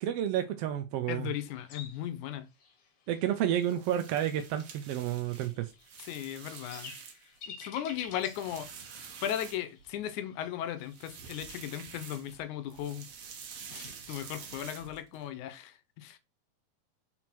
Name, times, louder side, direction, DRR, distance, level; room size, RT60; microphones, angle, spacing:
voice 1, 0.0-1.3 3.1-5.7, right 11 dB, 85° right, 1.3 m, -30 dB
voice 2, 1.1-2.5 6.0-6.9 7.5-8.7 9.2-13.1 13.7-16.2, left 11 dB, 80° left, 2.2 m, -37 dB
sound 1, 1.3-14.4, left 6 dB, 55° left, 1.9 m, -53 dB
sound 2, 3.5-7.4 7.8-10.0 10.8-12.4 12.7-15.2, right 6 dB, 65° right, 2.3 m, -48 dB
6.1 x 4.4 x 4.4 m
omnidirectional pair, 3.4 m